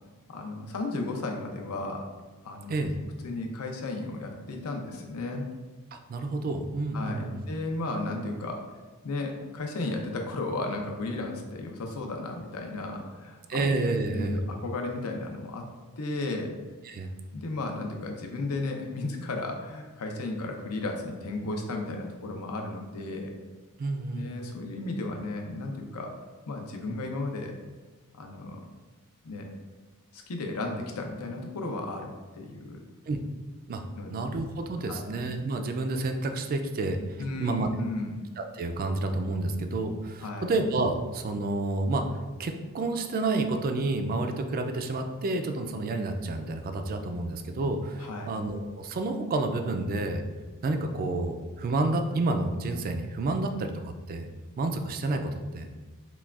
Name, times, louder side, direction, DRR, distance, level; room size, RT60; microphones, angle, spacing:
voice 1, 0.3-2.1 2.4-2.8 3.2-5.5 6.9-8.6 9.0-13.6 14.1-15.7 16.0-16.5 17.3-23.4 24.1-26.1 26.5-27.5 28.1-28.6 29.2-29.5 30.1-32.8 34.0-34.1 34.9-35.0 37.2-38.1 40.2-40.5 48.0-48.3, left 2 dB, 75° left, 3 dB, 0.6 m, -34 dB
voice 2, 5.9-7.4 13.5-14.4 16.8-17.1 23.8-24.3 33.1-33.2 33.7-33.8 34.1-37.7 38.4-42.0 42.4-50.2 50.6-54.3 54.6-55.7, right 2 dB, 40° right, 6 dB, 0.3 m, -29 dB
5.8 x 2.3 x 2.4 m, 1.3 s
head